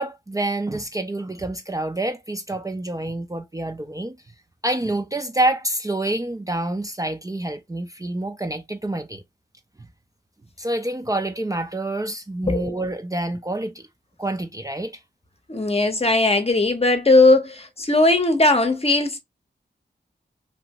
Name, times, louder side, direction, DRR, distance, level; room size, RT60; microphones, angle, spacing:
voice 1, 0.0-4.2 4.6-9.2 10.6-13.8 14.2-14.9, right 1 dB, 20° right, 0.4 m, -27 dB
voice 2, 12.4-12.8 15.5-19.2, left 2 dB, 35° left, 0.8 m, -18 dB
2.8 x 2.5 x 2.9 m
wide cardioid pair, 70°, 19 cm